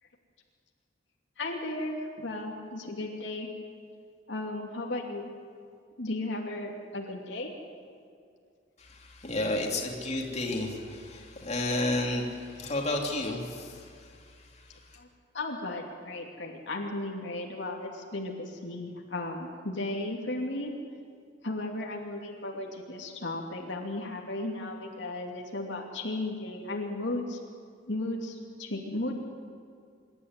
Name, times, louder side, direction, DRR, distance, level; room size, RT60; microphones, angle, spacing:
voice 1, 1.4-3.5 4.3-5.3 6.0-7.5 15.0-15.1 15.3-20.7 21.4-27.4 27.9-29.1, left 2 dB, 70° left, 0 dB, 2.7 m, -35 dB
voice 2, 8.8-13.9, left 2 dB, 35° left, 0 dB, 3.0 m, -31 dB
26.0 x 12.5 x 9.7 m, 2.3 s
head